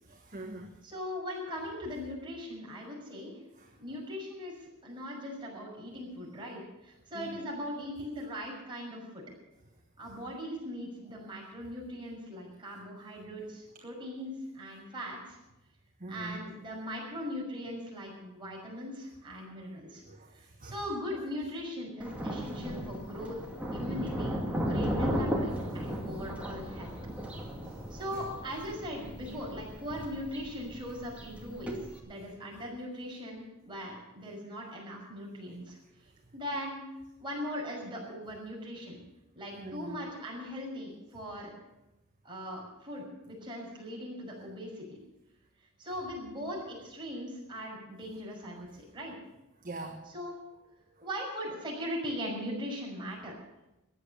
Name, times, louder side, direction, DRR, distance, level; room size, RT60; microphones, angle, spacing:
voice 1, 0.1-0.8 3.6-3.7 7.1-7.4 16.0-16.4 19.5-19.6 20.1-20.8 39.6-40.0 49.6-50.1, right 2 dB, 40° right, 3 dB, 1.3 m, -43 dB
voice 2, 0.8-3.4 3.8-9.2 10.0-15.4 16.1-20.0 20.3-23.4 23.7-26.9 27.9-31.8 32.0-35.8 36.3-36.8 37.2-39.0 39.3-41.5 42.2-44.9 45.8-49.1 50.1-50.3 51.0-53.3, equal, 25° right, -3 dB, 6.2 m, -40 dB
Thunder, 22.0-32.0, equal, 5° right, 2.3 m, -35 dB
14.5 x 10.0 x 8.4 m, 0.96 s
head